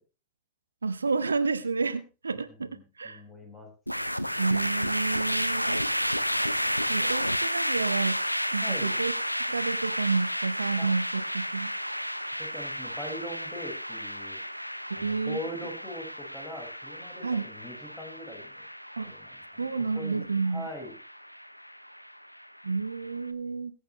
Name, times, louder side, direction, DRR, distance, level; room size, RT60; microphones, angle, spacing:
voice 1, 0.8-3.2 4.4-5.8 6.9-8.2 8.5-9.1 9.5-11.7 14.9-15.4 17.2-17.5 19.0-19.1 19.6-20.7 22.6-23.7, right 4 dB, 75° right, 13 dB, 0.8 m, -30 dB
voice 2, 2.5-3.7 8.6-8.9 10.8-10.9 12.4-14.4 15.0-18.6 19.0-19.6 19.9-20.9, left 1 dB, 15° left, 2 dB, 5.1 m, -41 dB
sound 1, 3.9-23.1, equal, 90° left, 0.6 m, -32 dB
21.0 x 8.5 x 3.1 m, 0.31 s
figure-of-eight pair, 90°, 0 cm